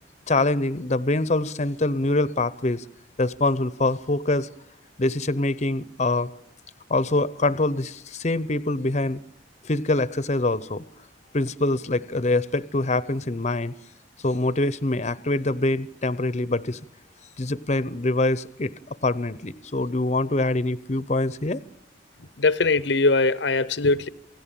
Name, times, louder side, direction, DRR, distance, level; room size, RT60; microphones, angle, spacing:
voice 1, 0.3-2.8 3.2-4.5 5.0-6.3 6.9-9.2 9.6-10.8 11.3-13.7 14.2-16.8 17.4-21.6, left 2 dB, 40° left, 0.8 m, -24 dB
voice 2, 22.4-24.1, left 3 dB, 70° left, 0.9 m, -21 dB
28.5 x 17.5 x 9.0 m
head